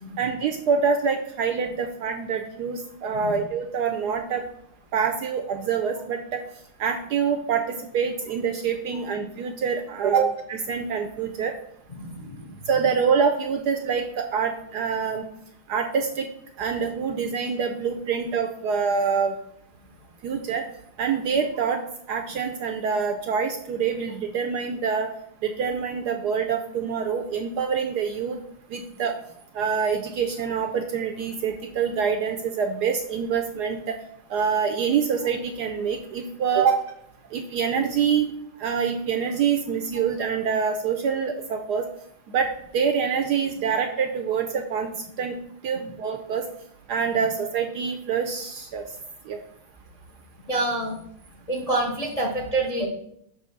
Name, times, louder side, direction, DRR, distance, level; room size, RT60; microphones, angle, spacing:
voice 1, 0.2-4.4 4.9-6.4 6.8-11.5 12.7-15.2 15.7-16.3 16.6-19.3 20.2-20.6 21.0-21.8 22.1-25.1 25.4-28.4 28.7-29.1 29.5-34.0 34.3-36.8 37.3-38.3 38.6-41.9 42.3-44.9 45.2-45.4 45.6-46.4 46.9-48.8 49.3-49.4, right 6 dB, 75° right, 5 dB, 1.0 m, -25 dB
voice 2, 11.9-12.6 36.6-36.7 39.9-40.0 50.5-51.0 51.5-52.9, right 2 dB, 50° left, -1 dB, 0.4 m, -27 dB
6.8 x 3.0 x 5.9 m, 0.71 s
omnidirectional pair, 2.2 m